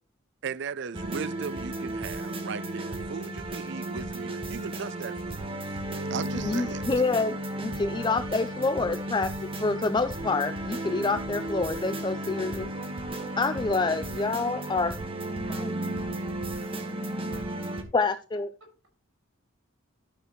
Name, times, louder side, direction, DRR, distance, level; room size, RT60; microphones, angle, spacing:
voice 1, 0.4-5.8 6.1-6.9, right 6 dB, 60° right, 0.4 m, -37 dB
sound 1, 0.9-17.8, right 1 dB, 25° right, 1.3 m, -34 dB
voice 2, 6.4-12.7 13.4-14.9 15.6-15.7 17.9-18.5, left 3 dB, 20° left, 0.4 m, -27 dB
voice 3, 12.9-15.0 15.4-15.7 15.9-16.9 17.3-17.4 18.6-18.9, right 1 dB, 90° right, 5.4 m, -54 dB
12.5 x 6.6 x 3.1 m
head